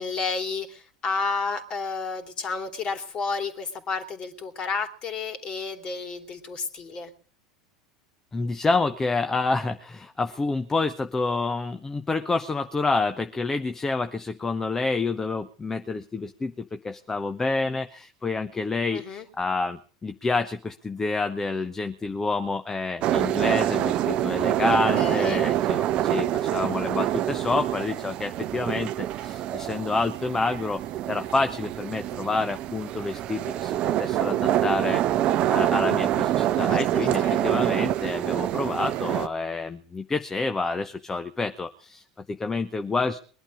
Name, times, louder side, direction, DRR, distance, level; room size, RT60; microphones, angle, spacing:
voice 1, 0.0-7.1 18.9-19.2 24.7-25.5 36.7-37.7, left 4 dB, 35° left, 8 dB, 3.0 m, -31 dB
voice 2, 8.3-30.8 31.1-35.0 35.5-43.2, left 3 dB, 15° left, 8 dB, 1.0 m, -28 dB
sound 1, 23.0-39.3, right 12 dB, 40° right, 0.8 m, -26 dB
22.0 x 11.5 x 5.0 m, 0.42 s
figure-of-eight pair, 75°, 3 cm